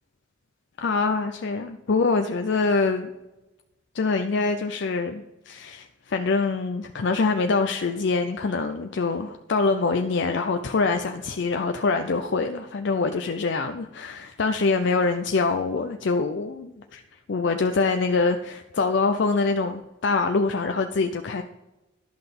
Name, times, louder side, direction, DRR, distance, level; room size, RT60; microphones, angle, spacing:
voice 1, 0.8-3.1 3.9-17.0 17.3-21.4, left 4 dB, 60° left, 6 dB, 0.5 m, -24 dB
11.5 x 5.8 x 5.2 m, 1.0 s
head